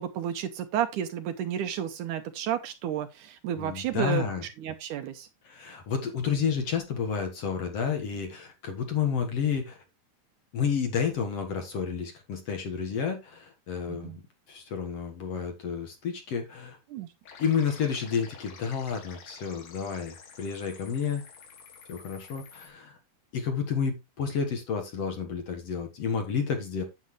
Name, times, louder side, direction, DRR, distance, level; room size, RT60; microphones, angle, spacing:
voice 1, 0.0-4.3 4.6-5.3 13.9-14.2 16.9-17.1, right 10 dB, 75° right, 2.1 m, -31 dB
voice 2, 3.6-4.4 5.4-9.8 10.5-14.2 14.5-16.8 17.4-21.2 21.9-23.0 23.3-26.8, left 6 dB, 55° left, 2.1 m, -30 dB
sound 1, 17.2-22.7, left 6 dB, 75° left, 3.6 m, -49 dB
9.7 x 8.2 x 3.1 m
omnidirectional pair, 4.1 m